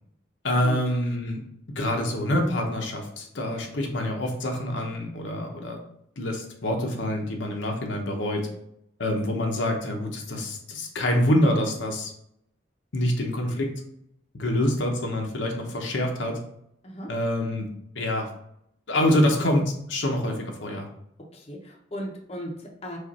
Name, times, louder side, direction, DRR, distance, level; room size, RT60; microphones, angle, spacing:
voice 1, 0.4-1.4 1.8-5.8 6.2-8.5 9.0-12.1 12.9-13.7 14.3-16.4 17.1-17.7 17.9-18.3 18.9-19.6 19.9-20.9, left 1 dB, 70° left, 2 dB, 0.8 m, -26 dB
voice 2, 21.3-23.0, equal, 30° left, -1 dB, 0.7 m, -36 dB
4.9 x 2.5 x 4.1 m, 0.73 s
head